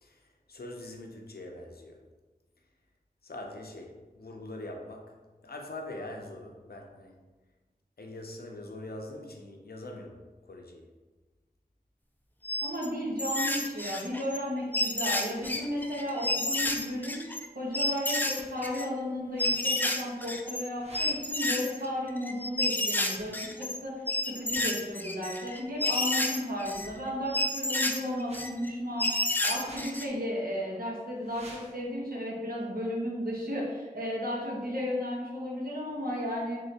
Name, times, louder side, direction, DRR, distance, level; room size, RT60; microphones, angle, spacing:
voice 1, 0.0-2.0 3.2-5.2 5.4-7.2 8.0-10.9, left 1 dB, 80° left, 2 dB, 0.5 m, -43 dB
sound 1, 12.4-12.9 13.2-14.4 14.7-17.5 17.7-18.9 19.4-20.6 20.9-23.8 24.1-26.9 27.3-28.7 29.0-30.1, left 1 dB, 10° left, 0.4 m, -30 dB
voice 2, 12.6-17.2 17.5-23.9 24.2-36.6, equal, 70° right, -4 dB, 1.0 m, -34 dB
sound 2, 15.3-15.6 16.5-16.9 18.3-18.4 19.3-19.6 20.7-21.2 23.1-23.3 24.4-24.7 26.5-27.3 28.2-28.4 29.5-29.9 31.1-31.7, right 1 dB, 40° right, 0.9 m, -51 dB
3.7 x 3.2 x 2.7 m, 1.3 s
wide cardioid pair, 40°, 16 cm